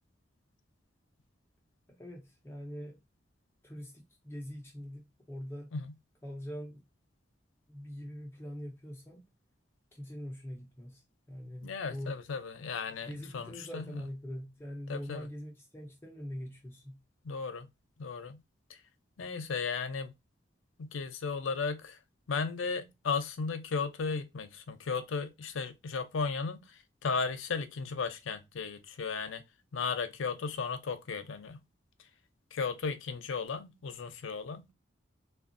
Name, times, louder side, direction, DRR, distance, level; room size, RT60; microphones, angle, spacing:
voice 1, 1.9-3.0 3.6-5.7 6.2-6.8 7.7-9.2 9.9-12.2 13.0-17.0, equal, 10° left, 0.5 m, -43 dB
voice 2, 11.6-13.8 14.9-15.3 17.2-17.7 18.0-18.4 18.7-18.8 19.2-20.1 20.8-22.0 22.3-29.4 29.7-31.6 32.5-34.6, left 5 dB, 85° left, 0.5 m, -35 dB
3.4 x 2.2 x 2.5 m
head